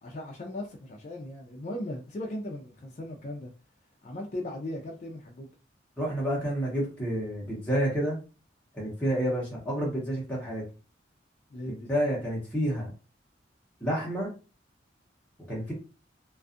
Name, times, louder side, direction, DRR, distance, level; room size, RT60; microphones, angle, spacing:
voice 1, 0.0-3.5 4.0-5.5 11.5-11.9, left 1 dB, 40° left, 0.4 m, -38 dB
voice 2, 6.0-8.2 8.7-10.6 11.9-12.9 13.8-14.3 15.5-15.7, equal, 5° left, 0.8 m, -29 dB
2.5 x 2.3 x 2.4 m
head